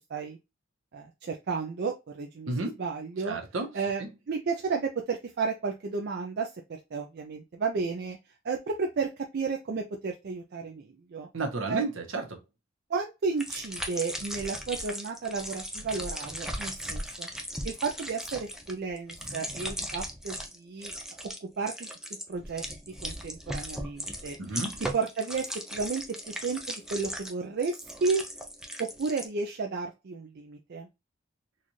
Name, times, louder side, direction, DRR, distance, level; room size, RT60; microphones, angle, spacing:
voice 1, 0.9-2.5 2.8-3.4 3.7-6.5 6.9-8.2 8.4-11.3 11.7-11.8 12.9-17.3 17.6-20.9 21.4-21.9 22.3-22.6 23.0-24.4 24.9-28.2 28.8-30.9, right 4 dB, 55° right, 3 dB, 0.4 m, -32 dB
voice 2, 2.5-2.8 3.2-3.7 11.3-12.4 24.4-24.8, right 2 dB, 75° right, 3 dB, 1.0 m, -32 dB
sound 1, 13.4-20.6 20.8-21.4 21.6-29.3, equal, ahead, 0.6 m, -37 dB
4.1 x 2.5 x 3.0 m, 0.25 s
head